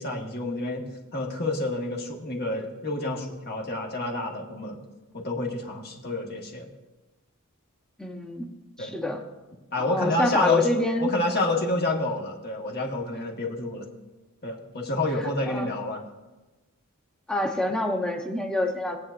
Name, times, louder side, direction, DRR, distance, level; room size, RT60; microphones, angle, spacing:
voice 1, 0.0-4.8 5.2-6.7 8.8-8.9 9.7-10.7 11.0-13.9 14.4-16.0, left 2 dB, 45° left, 0 dB, 1.6 m, -28 dB
voice 2, 8.0-8.5 8.8-9.2 9.8-11.1 15.2-15.7 17.3-19.0, left 1 dB, 5° left, 3 dB, 1.0 m, -27 dB
21.0 x 8.2 x 2.6 m, 1.2 s
head